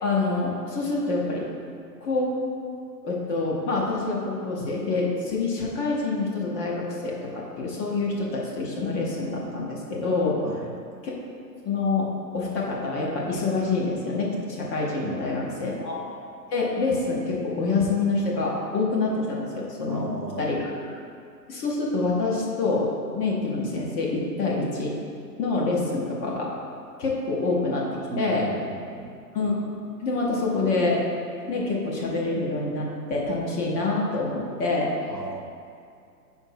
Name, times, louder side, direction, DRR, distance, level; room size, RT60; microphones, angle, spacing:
voice 1, 0.0-1.4 2.0-2.3 3.0-10.4 11.0-11.1 11.6-12.1 12.3-16.0 16.5-20.1 20.4-20.7 21.5-22.9 23.1-24.9 25.4-26.5 27.0-27.9 28.2-28.5 29.3-29.6 30.0-31.0 31.5-34.9, left 3 dB, 20° left, -3 dB, 0.8 m, -26 dB
voice 2, 15.0-15.9 19.9-20.6 28.1-29.1 35.1-35.4, right 4 dB, 90° right, 3 dB, 0.9 m, -37 dB
5.1 x 4.4 x 5.6 m, 2.5 s
hypercardioid pair, 125°, 49 cm